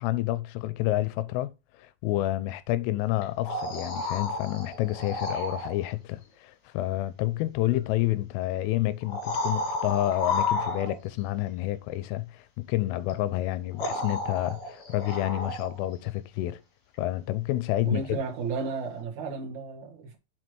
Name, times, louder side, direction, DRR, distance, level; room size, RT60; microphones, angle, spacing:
voice 1, 0.0-1.5 1.8-16.6 17.0-18.2, left 15 dB, 85° left, 3.1 m, -29 dB
sound 1, 3.2-5.8 7.6-7.7 9.0-11.2 13.1-13.2 13.8-15.9 19.0-19.1, left 3 dB, 55° left, 3.5 m, -32 dB
voice 2, 17.8-20.2, right 4 dB, 90° right, 1.6 m, -33 dB
7.3 x 4.4 x 4.5 m
omnidirectional pair, 5.7 m